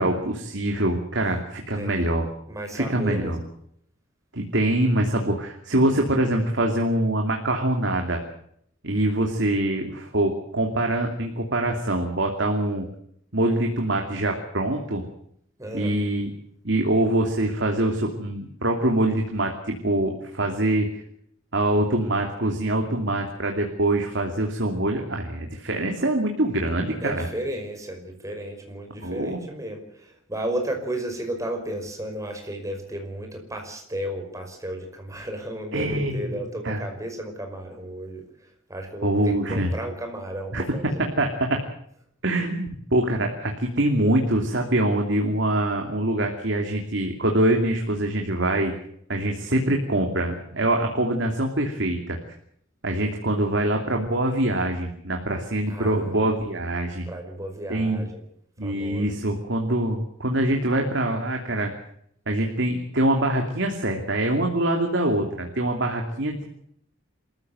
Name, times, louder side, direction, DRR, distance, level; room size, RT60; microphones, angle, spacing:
voice 1, 0.0-2.3 2.7-3.4 4.3-8.2 8.8-12.9 13.3-15.0 15.7-16.3 16.6-21.0 21.5-27.3 29.0-29.4 35.7-36.8 39.0-39.8 40.5-41.6 42.2-48.7 49.1-52.2 52.8-57.1 57.7-58.1 58.6-61.7 62.3-66.4, right 1 dB, 60° right, 2 dB, 2.8 m, -24 dB
voice 2, 2.5-3.3 15.6-15.9 27.0-38.2 38.7-41.1 55.7-56.3 57.1-58.2 58.6-59.2, right 1 dB, 15° right, 4 dB, 5.3 m, -33 dB
26.5 x 15.0 x 7.9 m, 0.70 s
head